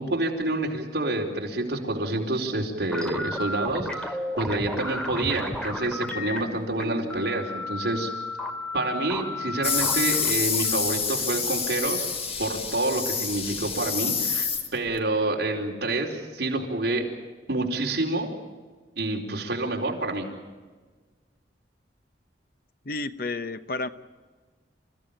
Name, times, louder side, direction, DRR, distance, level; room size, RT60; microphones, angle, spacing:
voice 1, 0.0-8.1 8.7-12.1 12.4-17.1 17.5-18.3 19.0-20.3, right 2 dB, 65° right, 0 dB, 4.5 m, -28 dB
sound 1, 2.9-11.8, left 1 dB, 5° left, 2.4 m, -34 dB
sound 2, 9.6-15.0, left 5 dB, 35° left, 2.3 m, -27 dB
voice 2, 22.8-23.9, left 3 dB, 55° left, 11 dB, 1.0 m, -31 dB
28.0 x 15.5 x 8.8 m, 1.4 s
head